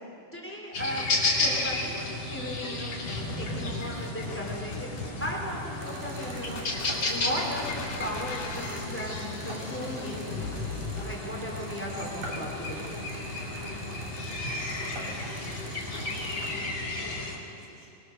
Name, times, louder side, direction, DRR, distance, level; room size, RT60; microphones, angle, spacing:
voice 1, 0.3-2.9 3.4-6.6 7.1-10.6 11.0-12.8, equal, 5° left, -2 dB, 4.1 m, -36 dB
sound 1, 0.7-17.4, left 2 dB, 40° left, 3.2 m, -33 dB
sound 2, 3.1-11.0, left 3 dB, 75° left, 4.6 m, -40 dB
sound 3, 5.8-16.6, right 2 dB, 80° right, 4.7 m, -43 dB
voice 2, 15.0-18.0, right 1 dB, 20° right, -4 dB, 1.3 m, -54 dB
24.5 x 21.5 x 6.6 m, 2.5 s
omnidirectional pair, 3.8 m